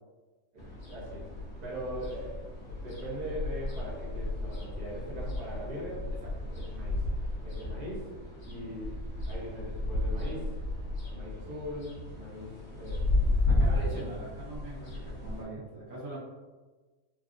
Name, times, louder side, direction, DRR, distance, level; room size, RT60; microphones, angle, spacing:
voice 1, 0.5-1.3 1.6-2.4 2.7-6.1 6.7-7.0 7.4-8.1 8.4-8.9 9.3-10.5 11.0-13.0 13.5-13.8, equal, 35° right, -6 dB, 0.8 m, -40 dB
sound 1, 0.6-15.4, left 2 dB, 55° left, 1.1 m, -33 dB
voice 2, 13.2-16.2, right 2 dB, 80° right, -9 dB, 1.6 m, -42 dB
3.9 x 2.0 x 2.5 m, 1.3 s
omnidirectional pair, 1.6 m